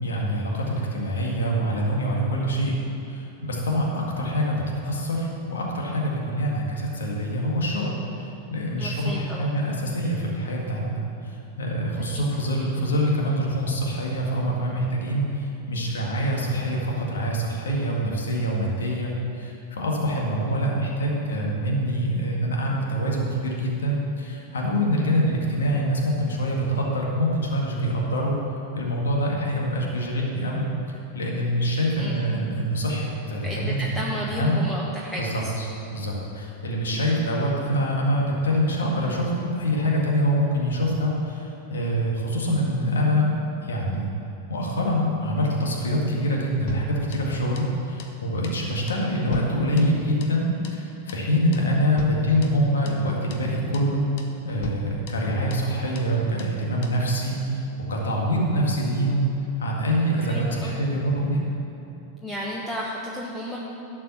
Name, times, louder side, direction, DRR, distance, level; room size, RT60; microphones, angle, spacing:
voice 1, 0.0-2.7 3.1-4.6 4.8-8.0 8.2-28.3 28.7-30.6 31.1-34.0 34.3-34.6 35.2-43.3 43.6-44.1 44.5-54.1 54.4-57.6 57.9-59.3 59.6-61.4, equal, 75° left, -2 dB, 1.9 m, -25 dB
voice 2, 8.8-9.5 11.9-12.2 32.0-32.2 33.4-35.5 36.9-37.0 60.2-60.8 62.2-63.6, equal, 10° left, -4 dB, 1.2 m, -33 dB
sound 1, 46.7-47.7 48.0-48.2 48.4-48.6 48.9-50.4 50.6-50.8 51.1-51.3 51.5-51.7 52.0-53.0 53.3-53.5 53.7-53.9 54.2-54.4 54.6-55.7 56.0-56.1 56.4-56.6 56.8-57.0, left 4 dB, 55° left, 1.1 m, -39 dB
11.5 x 5.4 x 7.2 m, 2.8 s
figure-of-eight pair, 95°, 0 cm